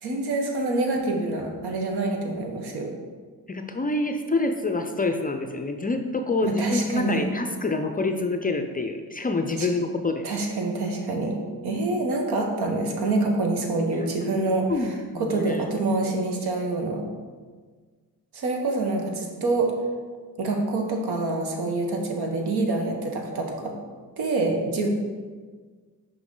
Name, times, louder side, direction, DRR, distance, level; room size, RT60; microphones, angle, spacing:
voice 1, 0.0-2.9 6.4-7.3 9.6-9.7 10.2-11.4 11.6-17.0 18.3-19.7 20.4-23.7 24.2-24.9, right 2 dB, 70° right, 2 dB, 1.2 m, -26 dB
voice 2, 3.5-10.3 14.0-14.1 14.7-15.7, left 3 dB, 20° left, 6 dB, 0.4 m, -27 dB
5.9 x 5.0 x 3.8 m, 1.5 s
cardioid pair, 85°, 40 cm